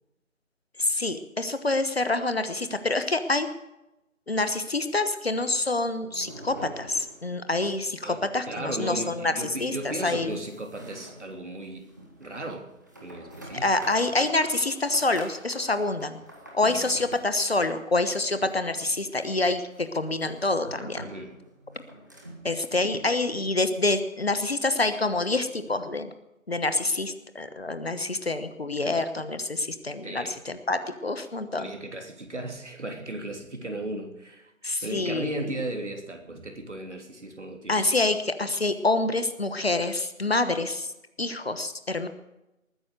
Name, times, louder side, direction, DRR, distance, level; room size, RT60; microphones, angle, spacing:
voice 1, 0.8-3.5 4.3-10.4 13.5-16.2 16.5-21.1 22.4-26.1 26.5-31.7 34.6-35.6 37.7-40.9 41.2-42.1, left 2 dB, 45° left, 10 dB, 1.2 m, -27 dB
sound 1, 5.3-7.7 7.9-8.0 8.3-8.4 8.9-22.5, right 1 dB, 15° right, 1.3 m, -47 dB
voice 2, 8.5-11.8 12.2-12.7 13.0-13.9 16.6-16.8 21.0-21.4 28.8-28.9 30.0-30.4 31.5-37.8, right 1 dB, 55° right, 3 dB, 3.3 m, -36 dB
20.5 x 9.6 x 6.6 m, 0.93 s
figure-of-eight pair, 165°, 41 cm